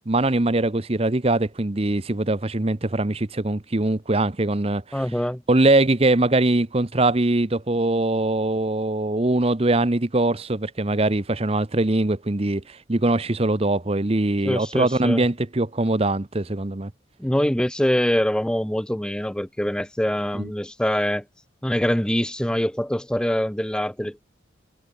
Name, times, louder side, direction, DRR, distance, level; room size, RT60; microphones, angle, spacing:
voice 1, 0.1-5.0 5.5-16.9 20.3-20.5, right 2 dB, 30° right, 0.9 m, -22 dB
voice 2, 4.9-5.4 14.4-15.2 17.2-21.2 21.6-24.2, equal, 5° left, 0.5 m, -24 dB
head